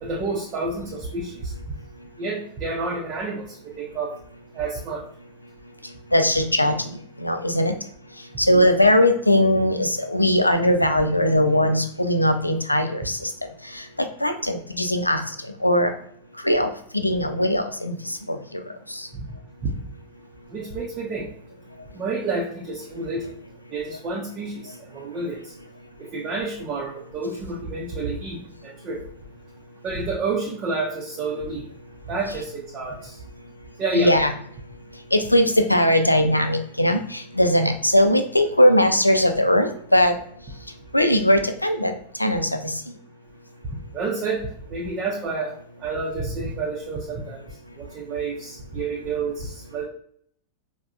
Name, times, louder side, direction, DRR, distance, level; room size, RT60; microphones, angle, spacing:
voice 1, 0.0-1.5 2.2-4.1 4.5-5.0 19.6-19.7 20.5-21.3 22.0-23.2 23.7-25.5 26.0-29.0 29.8-31.6 32.1-33.1 33.8-34.1 43.9-45.5 45.8-47.4 47.8-49.8, right 3 dB, 30° right, -2 dB, 0.6 m, -29 dB
voice 2, 5.8-7.8 8.2-13.3 13.6-15.9 16.4-19.1 33.9-34.3 35.1-40.2 40.9-42.8, left 1 dB, 85° left, 7 dB, 0.3 m, -20 dB
4.4 x 2.1 x 2.4 m, 0.65 s
figure-of-eight pair, 90°, 0 cm